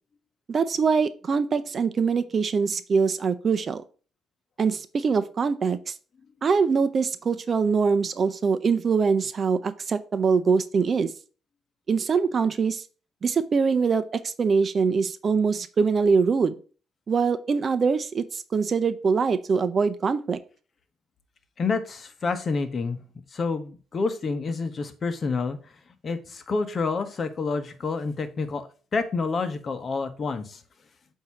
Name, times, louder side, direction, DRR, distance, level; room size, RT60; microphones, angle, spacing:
voice 1, 0.5-3.8 4.6-5.9 6.4-11.1 11.9-12.8 13.2-16.5 17.1-20.4, right 5 dB, 45° right, 11 dB, 0.6 m, -23 dB
voice 2, 21.6-23.0 23.3-25.8 26.0-30.6, left 4 dB, 45° left, 9 dB, 1.0 m, -28 dB
7.9 x 2.8 x 5.7 m, 0.37 s
cardioid pair, 90°, 0 cm